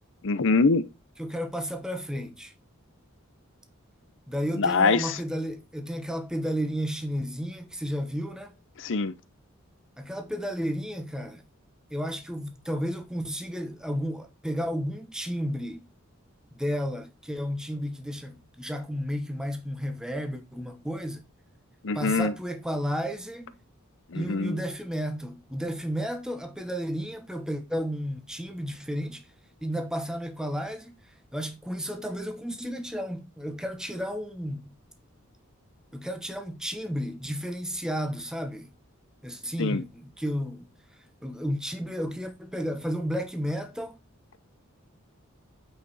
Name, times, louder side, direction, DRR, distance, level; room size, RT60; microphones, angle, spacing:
voice 1, 0.2-0.9 4.6-5.2 8.8-9.1 21.8-22.3 24.1-24.6 39.6-39.8, left 4 dB, 65° left, 0.7 m, -24 dB
voice 2, 1.2-2.5 4.3-8.5 10.0-11.4 11.9-15.9 16.5-21.2 21.9-23.6 24.1-29.3 29.6-31.0 31.3-34.7 35.9-38.7 39.2-40.7 41.2-44.0, equal, 5° right, 1.1 m, -32 dB
9.2 x 5.0 x 4.1 m
head